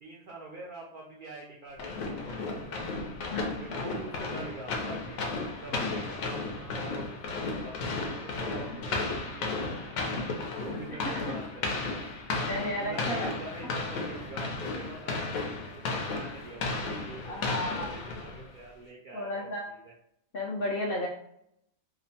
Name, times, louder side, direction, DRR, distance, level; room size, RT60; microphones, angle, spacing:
voice 1, 0.0-3.2 3.6-5.3 5.6-12.0 12.3-19.9, right 2 dB, 75° right, -2 dB, 0.4 m, -45 dB
sound 1, 1.8-18.6, left 3 dB, 85° left, 1.0 m, -34 dB
voice 2, 12.5-13.3 17.3-18.0 19.1-19.6 20.3-21.1, left 1 dB, 65° left, -2 dB, 0.6 m, -33 dB
2.8 x 2.1 x 2.7 m, 0.74 s
omnidirectional pair, 1.4 m